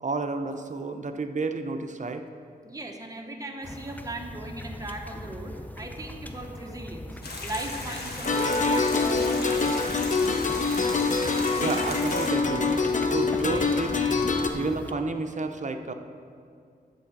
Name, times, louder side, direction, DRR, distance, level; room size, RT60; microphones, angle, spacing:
voice 1, 0.0-2.2 11.6-14.1 14.5-15.9, right 3 dB, 45° right, 6 dB, 0.7 m, -31 dB
voice 2, 2.6-7.1 7.4-10.7, right 2 dB, 20° right, 1 dB, 1.1 m, -38 dB
sound 1, 3.6-14.9, left 1 dB, 10° left, 0.5 m, -40 dB
sound 2, 7.2-12.3, left 2 dB, 70° left, 1.5 m, -36 dB
sound 3, 8.2-14.5, left 4 dB, 50° left, 0.7 m, -25 dB
10.5 x 4.7 x 7.2 m, 2.2 s
wide cardioid pair, 85°, 17 cm